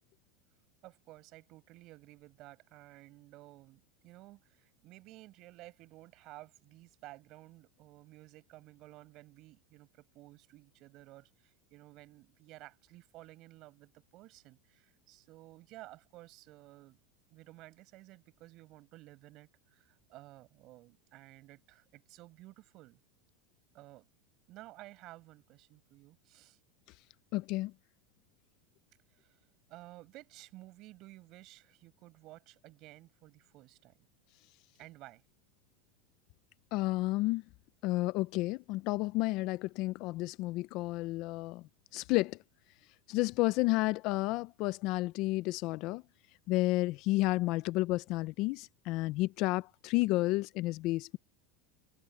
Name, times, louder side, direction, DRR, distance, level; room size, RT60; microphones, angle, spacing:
voice 1, 0.8-17.0 17.3-23.0 23.7-24.1 24.5-26.6 29.1-29.4 29.7-33.9 34.8-35.2, right 18 dB, 40° right, 6.4 m, -54 dB
voice 2, 27.3-27.7 36.7-37.4 37.8-41.6 41.9-42.4 43.1-46.0 46.5-51.2, left 20 dB, 45° left, 0.5 m, -31 dB
supercardioid pair, 150°, 0 cm